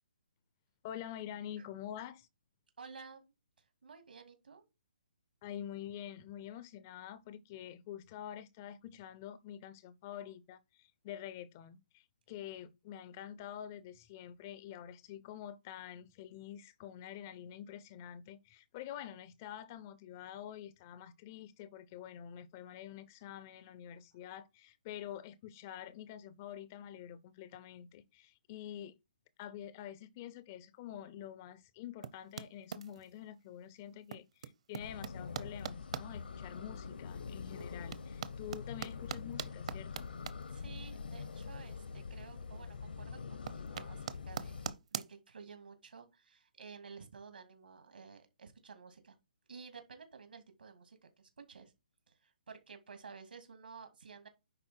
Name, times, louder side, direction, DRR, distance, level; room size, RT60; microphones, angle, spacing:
voice 1, 0.8-2.3 5.4-28.9 29.4-40.1, left 10 dB, 15° left, 0.4 m, -47 dB
voice 2, 2.8-3.3 3.6-4.6 40.5-49.2 49.5-51.7 52.1-54.3, right 5 dB, 80° right, 2.6 m, -53 dB
sound 1, 32.0-33.2 34.0-36.0 36.6-36.7 37.3-41.9 42.2-42.8 43.0-45.1, right 7 dB, 40° right, 0.7 m, -43 dB
sound 2, 34.8-44.7, left 5 dB, 80° left, 0.9 m, -45 dB
9.7 x 4.0 x 4.4 m
hypercardioid pair, 175°, 5 cm